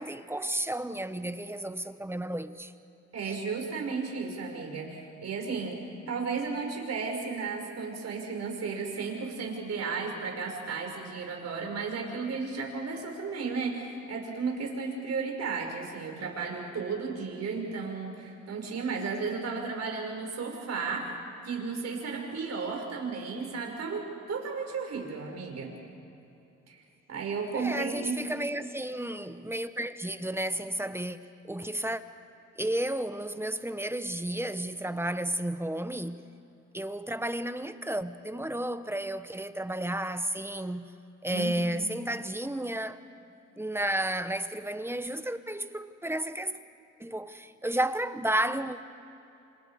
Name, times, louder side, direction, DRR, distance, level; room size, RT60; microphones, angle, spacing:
voice 1, 0.0-2.7 27.5-31.2 31.4-32.0 32.6-36.2 36.7-40.9 41.2-43.0 43.6-46.6 47.0-48.8, right 1 dB, 10° right, 1.0 m, -32 dB
voice 2, 3.1-5.8 6.1-21.1 21.4-24.0 24.3-25.7 26.7-26.8 27.1-28.2 41.3-41.6, right 4 dB, 60° right, 5.7 m, -34 dB
28.0 x 27.0 x 5.0 m
cardioid pair, 90°, 30 cm